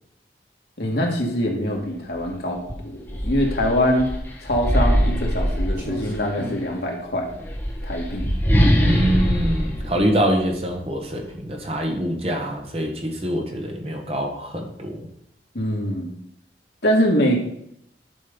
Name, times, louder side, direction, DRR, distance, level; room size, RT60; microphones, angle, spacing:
voice 1, 0.8-4.1 4.4-7.3 7.8-8.3 9.9-10.1 15.5-16.1 16.8-17.4, equal, 65° left, -1 dB, 2.1 m, -23 dB
sound 1, 2.1-2.3 2.7-6.3 7.2-10.9, equal, 10° left, 1.4 m, -22 dB
Clock, 5.8-13.2, equal, 50° right, 2.2 m, -41 dB
voice 2, 8.8-15.1, equal, 35° right, 2 dB, 1.4 m, -25 dB
10.5 x 5.3 x 5.4 m, 0.74 s
head